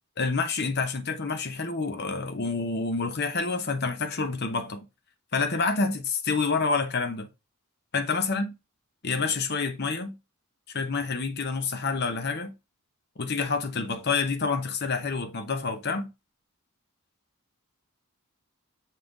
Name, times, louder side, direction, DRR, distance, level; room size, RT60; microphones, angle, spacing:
voice 1, 0.2-4.8 5.3-7.3 7.9-8.5 9.0-10.1 10.7-12.5 13.2-16.1, left 4 dB, 50° left, 0.8 m, -28 dB
7.6 x 3.6 x 3.9 m
head